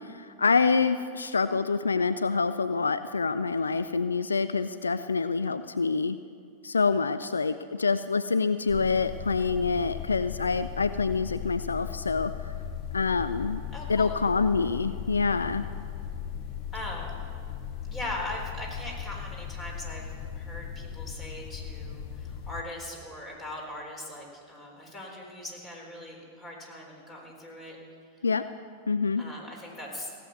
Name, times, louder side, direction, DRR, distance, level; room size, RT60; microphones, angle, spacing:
voice 1, 0.0-6.2 6.6-12.3 12.9-13.6 13.9-15.6 28.2-28.4 28.9-29.2, left 4 dB, 80° left, 12 dB, 0.4 m, -26 dB
sound 1, 8.7-22.6, left 9 dB, 40° left, 1.0 m, -37 dB
voice 2, 13.7-14.2 16.7-17.2 17.8-27.8 29.2-30.1, left 1 dB, 25° left, 0 dB, 4.1 m, -40 dB
16.5 x 7.8 x 8.2 m, 2.4 s
figure-of-eight pair, 95°, 0 cm